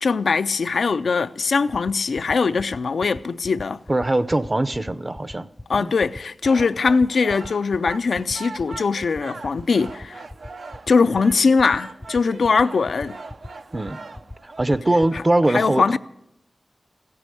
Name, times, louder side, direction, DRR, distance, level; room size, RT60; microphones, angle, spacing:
voice 1, 0.0-3.8 5.7-10.2 10.9-13.2 15.1-15.2 15.5-16.0, left 4 dB, 90° left, 0.4 m, -21 dB
sound 1, 1.5-15.2, left 1 dB, 15° left, 0.5 m, -37 dB
voice 2, 3.9-5.5 5.8-5.9 13.7-14.0 14.4-16.0, right 1 dB, 25° right, 0.6 m, -21 dB
sound 2, 6.4-15.4, right 3 dB, 80° right, 0.8 m, -41 dB
16.0 x 8.4 x 7.8 m
wide cardioid pair, 85°, 0 cm